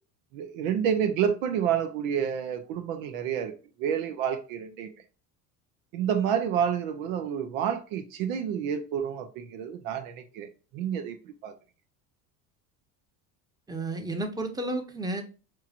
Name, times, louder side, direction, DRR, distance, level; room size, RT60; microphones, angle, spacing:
voice 1, 0.3-3.5 3.8-4.9 5.9-10.5 10.7-11.2 11.4-11.5, right 8 dB, 75° right, 0.8 m, -29 dB
voice 2, 13.7-15.2, right 2 dB, 10° right, 0.9 m, -32 dB
5.6 x 3.1 x 2.5 m
hypercardioid pair, 85°, 42 cm